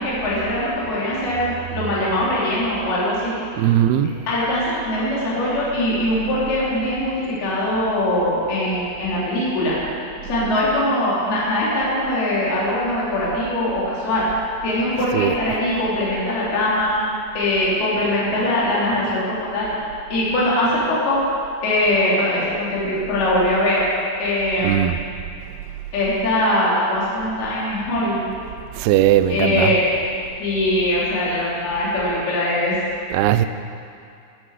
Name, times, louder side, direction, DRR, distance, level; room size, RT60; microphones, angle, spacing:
voice 1, 0.0-3.3 4.3-9.8 10.2-14.3 14.6-16.9 17.3-19.7 20.1-21.2 21.6-23.8 24.2-24.8 25.9-28.2 29.3-29.8 30.4-32.8, left 1 dB, 65° left, -7 dB, 5.0 m, -21 dB
voice 2, 3.6-4.1 15.1-15.3 24.6-25.0 28.8-29.7 33.1-33.5, right 12 dB, 80° right, 11 dB, 2.4 m, -18 dB
14.0 x 13.5 x 4.9 m, 2.4 s
omnidirectional pair, 4.9 m